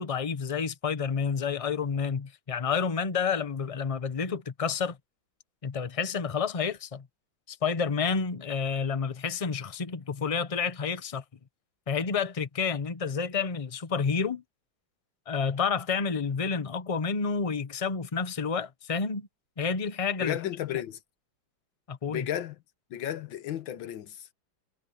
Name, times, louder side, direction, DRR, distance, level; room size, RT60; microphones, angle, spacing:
voice 1, 0.0-5.0 5.6-7.1 7.5-11.2 11.9-14.4 15.3-19.3 19.6-20.4 21.9-22.3, left 5 dB, 50° left, 0.4 m, -29 dB
voice 2, 20.2-21.0 22.1-22.6 22.9-24.3, left 11 dB, 75° left, 1.7 m, -33 dB
omnidirectional pair, 2.2 m